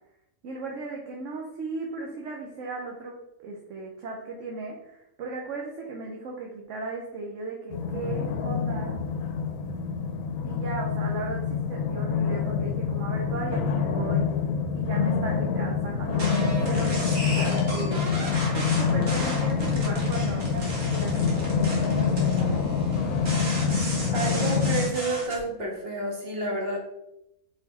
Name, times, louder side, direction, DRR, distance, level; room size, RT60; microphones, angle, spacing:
voice 1, 0.4-9.0 10.4-14.3 14.7-18.1 18.5-22.7, right 3 dB, 60° right, 0 dB, 1.1 m, -36 dB
sound 1, 7.7-24.8, left 6 dB, 70° left, 1.0 m, -26 dB
sound 2, 8.0-9.6 13.5-15.4 18.9-21.1, left 2 dB, 10° left, 1.5 m, -44 dB
sound 3, 16.1-25.4, right 1 dB, 80° right, 1.9 m, -35 dB
voice 2, 24.1-26.8, right 2 dB, 40° right, -1 dB, 1.7 m, -30 dB
4.9 x 4.6 x 4.2 m, 0.88 s
omnidirectional pair, 1.5 m